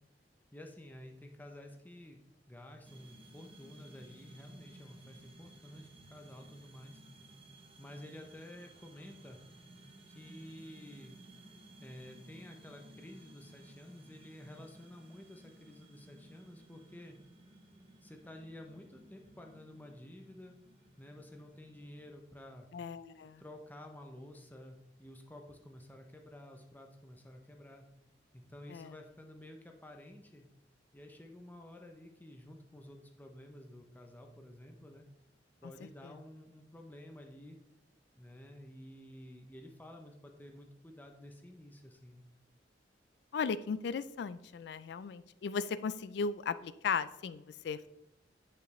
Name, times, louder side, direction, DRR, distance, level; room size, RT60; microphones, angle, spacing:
voice 1, 0.5-2.2 2.5-7.0 7.8-9.4 10.1-11.2 11.8-17.2 18.0-20.6 21.0-22.7 23.4-27.9 28.3-30.5 30.9-35.1 35.6-37.6 38.2-42.3, left 1 dB, 10° left, 3 dB, 0.6 m, -51 dB
sound 1, 2.8-22.2, right 1 dB, 30° right, 0.8 m, -58 dB
voice 2, 22.7-23.4 28.7-28.9 43.3-47.9, left 5 dB, 65° left, 15 dB, 0.3 m, -36 dB
8.8 x 5.4 x 3.1 m, 0.88 s
head